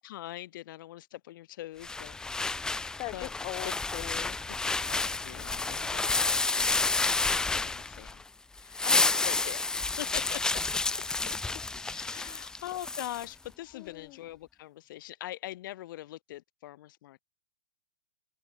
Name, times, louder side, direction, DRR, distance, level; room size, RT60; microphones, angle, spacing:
voice 1, 0.0-2.8 3.1-3.3 3.6-3.7 4.5-6.8 7.1-8.2 8.6-10.4 11.2-11.3 11.8-17.2, left 15 dB, 55° left, 7.9 m, -43 dB
sound 1, 1.8-8.2 8.6-13.3, left 3 dB, 5° left, 0.3 m, -30 dB
voice 2, 3.0-4.4 11.3-11.4 12.1-12.5 13.7-14.2, left 24 dB, 35° left, 1.1 m, -41 dB
open air
hypercardioid pair, 115°, 13 cm